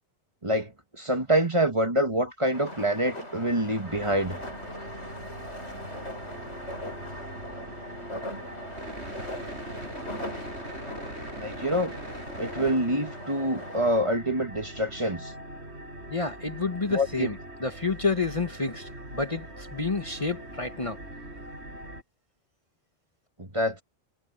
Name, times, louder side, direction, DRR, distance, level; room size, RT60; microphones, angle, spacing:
voice 1, 0.4-4.4 11.3-12.0 12.4-15.3 16.9-17.3 23.4-23.8, right 1 dB, 25° right, 1.8 m, -26 dB
sound 1, 2.5-14.0, left 1 dB, 80° left, 8.2 m, -40 dB
sound 2, 3.8-22.0, right 1 dB, 70° right, 6.3 m, -41 dB
voice 2, 16.1-21.0, left 4 dB, 30° left, 1.3 m, -29 dB
omnidirectional pair, 1.2 m